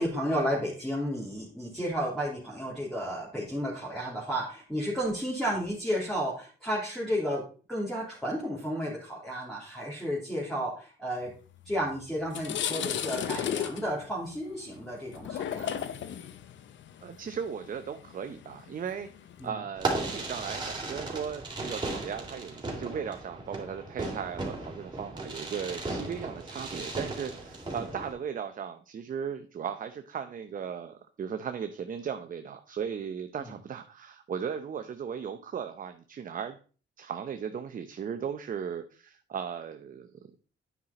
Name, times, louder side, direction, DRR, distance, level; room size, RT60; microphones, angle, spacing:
voice 1, 0.0-7.4 7.7-11.3 11.6-15.8 19.4-19.6 27.7-27.8 33.4-33.5, equal, 5° left, -5 dB, 3.2 m, -32 dB
sound 1, 11.7-11.8 12.2-19.5, left 9 dB, 70° left, 0.8 m, -35 dB
voice 2, 17.0-19.1 19.4-36.6 37.0-40.3, right 7 dB, 45° right, 8 dB, 0.7 m, -37 dB
Fireworks, 19.7-28.1, right 2 dB, 20° right, 3.2 m, -36 dB
9.5 x 5.7 x 4.2 m, 0.38 s
cardioid pair, 90°, 20 cm